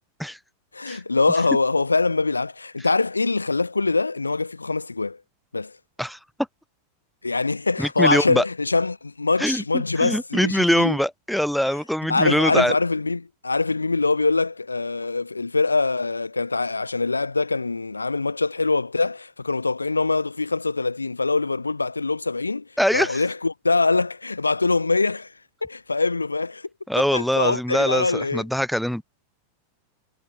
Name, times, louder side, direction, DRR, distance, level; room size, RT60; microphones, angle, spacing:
voice 1, 0.7-5.2 5.5-5.7 7.2-11.0 12.1-22.7 22.9-25.3 25.6-26.7 27.1-28.4, left 3 dB, 80° left, 1.3 m, -23 dB
voice 2, 7.8-8.4 9.4-9.6 10.0-12.7 22.8-23.2 26.9-29.0, equal, ahead, 0.3 m, -23 dB
figure-of-eight pair, 90°, 0 cm